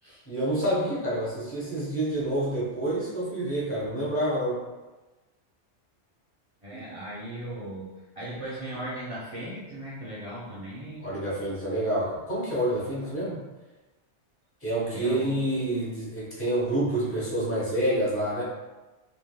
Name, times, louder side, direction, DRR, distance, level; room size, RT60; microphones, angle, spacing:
voice 1, 0.3-4.6 11.0-13.4 14.6-18.4, right 1 dB, 10° left, -8 dB, 0.9 m, -28 dB
voice 2, 6.6-11.1 13.0-13.1 14.9-15.3, right 1 dB, 40° right, -9 dB, 0.5 m, -38 dB
3.3 x 2.6 x 2.2 m, 1.1 s
omnidirectional pair, 1.2 m